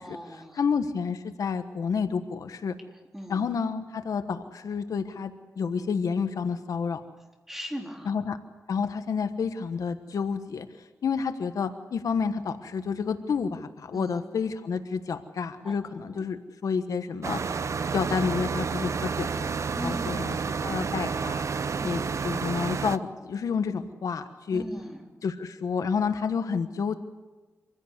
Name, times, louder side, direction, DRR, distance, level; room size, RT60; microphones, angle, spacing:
voice 1, 0.0-0.6 3.1-3.4 7.5-8.1 13.9-14.2 15.6-15.7 16.1-16.3 19.7-20.2 21.7-22.0 24.5-25.0, equal, 5° right, 2 dB, 3.8 m, -38 dB
voice 2, 0.6-2.7 3.3-7.0 8.0-8.4 8.7-10.7 11.0-17.4 17.9-20.3 20.6-21.4 21.8-24.6 25.2-27.0, left 6 dB, 80° left, 9 dB, 1.3 m, -29 dB
sound 1, 17.2-23.0, right 5 dB, 60° right, 0.8 m, -30 dB
26.0 x 16.0 x 8.2 m, 1.2 s
cardioid pair, 85°, 6 cm